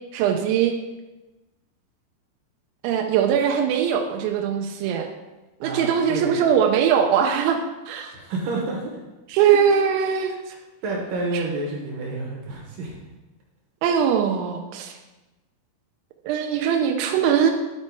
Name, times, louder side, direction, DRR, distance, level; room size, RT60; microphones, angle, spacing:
voice 1, 0.1-0.7 2.8-5.1 5.6-7.6 7.9-8.1 9.3-10.3 13.8-14.9 16.2-17.5, right 8 dB, 90° right, 2 dB, 3.0 m, -21 dB
voice 2, 5.6-6.4 8.1-9.0 9.4-9.6 10.2-10.3 10.8-13.0, right 2 dB, 65° right, -1 dB, 2.3 m, -29 dB
12.5 x 4.4 x 4.5 m, 1.1 s
omnidirectional pair, 5.3 m